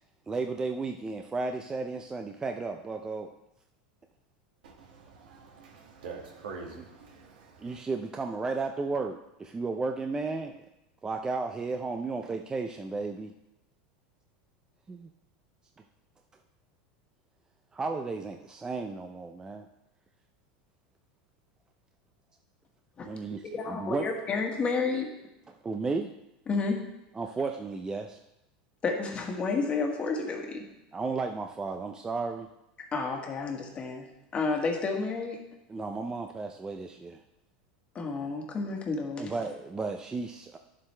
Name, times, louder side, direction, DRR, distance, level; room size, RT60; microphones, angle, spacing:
voice 1, 0.3-3.3 6.7-6.8 7.6-10.5 11.0-13.3 14.9-15.1 17.7-19.7 23.1-24.1 25.5-26.1 27.1-28.2 30.9-32.5 35.7-37.2 39.2-40.6, right 3 dB, 15° right, 4 dB, 0.5 m, -33 dB
voice 2, 4.6-7.8, right 4 dB, 90° right, -1 dB, 2.1 m, -45 dB
voice 3, 23.4-25.1 26.5-26.8 28.8-30.6 32.8-35.4 37.9-39.3, left 4 dB, 25° left, 2 dB, 1.6 m, -31 dB
11.0 x 7.4 x 3.3 m, 0.89 s
supercardioid pair, 125°, 5 cm